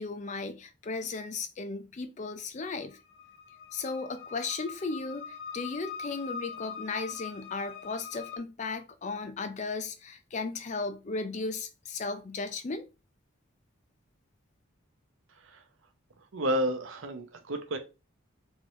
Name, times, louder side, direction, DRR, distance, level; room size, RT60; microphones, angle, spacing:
voice 1, 0.0-3.0 3.7-12.8, left 3 dB, 35° left, 0.4 m, -36 dB
sound 1, 2.7-8.4, left 7 dB, 80° left, 0.9 m, -43 dB
voice 2, 16.3-17.8, equal, 75° right, 0.8 m, -31 dB
3.7 x 3.1 x 3.1 m
head